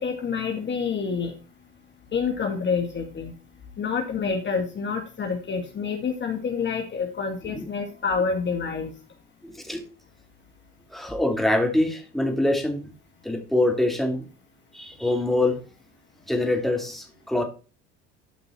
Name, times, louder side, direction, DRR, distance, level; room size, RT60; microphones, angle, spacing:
voice 1, 0.0-1.3 2.1-3.4 3.8-8.9, left 5 dB, 35° left, 3 dB, 2.0 m, -27 dB
voice 2, 9.4-9.8 10.9-12.9 13.2-14.3 14.7-15.6 16.3-17.4, left 1 dB, ahead, 2 dB, 2.9 m, -24 dB
12.0 x 5.3 x 4.3 m, 0.35 s
supercardioid pair, 80°, 31 cm